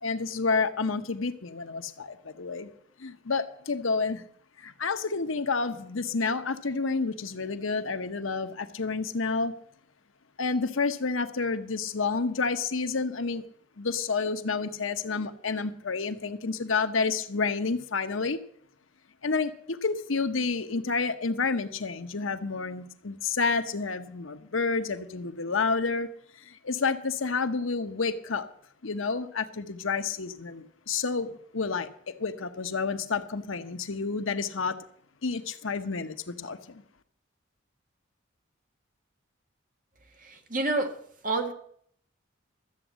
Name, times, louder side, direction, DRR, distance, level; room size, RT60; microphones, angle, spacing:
voice 1, 0.0-2.7 3.0-4.2 4.6-9.5 10.4-13.4 13.8-18.4 19.2-26.1 26.4-28.5 28.8-34.8 35.2-36.8, left 4 dB, 85° left, 1.0 m, -29 dB
voice 2, 40.3-40.9 41.2-41.5, right 2 dB, 40° right, 1.6 m, -28 dB
13.0 x 8.1 x 7.4 m
head